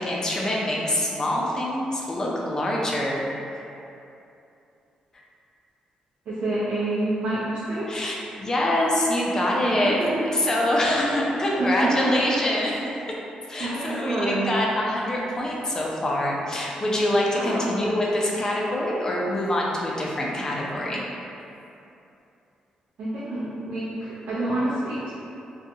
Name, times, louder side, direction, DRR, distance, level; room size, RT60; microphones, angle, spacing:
voice 1, 0.0-3.2 3.5-3.6 7.9-10.0 10.3-12.8 13.5-21.0, left 1 dB, 25° left, -3 dB, 0.4 m, -25 dB
voice 2, 6.3-7.9 9.6-10.4 11.6-12.3 13.6-14.6 17.3-17.6 23.0-25.1, right 1 dB, 75° right, -13 dB, 0.6 m, -27 dB
2.5 x 2.3 x 2.7 m, 2.8 s
cardioid pair, 130°, 2 cm